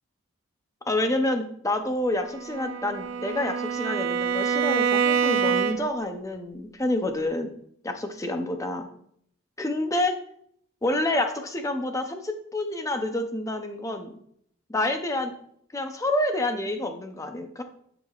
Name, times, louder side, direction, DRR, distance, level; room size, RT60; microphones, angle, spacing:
voice 1, 0.9-7.5 7.8-8.9 9.6-10.1 10.8-14.2 14.7-15.3 15.7-17.6, left 1 dB, 15° left, 6 dB, 0.5 m, -28 dB
Bowed string instrument, 2.2-6.1, right 6 dB, 60° right, 0.5 m, -26 dB
9.3 x 4.9 x 2.4 m, 0.67 s
head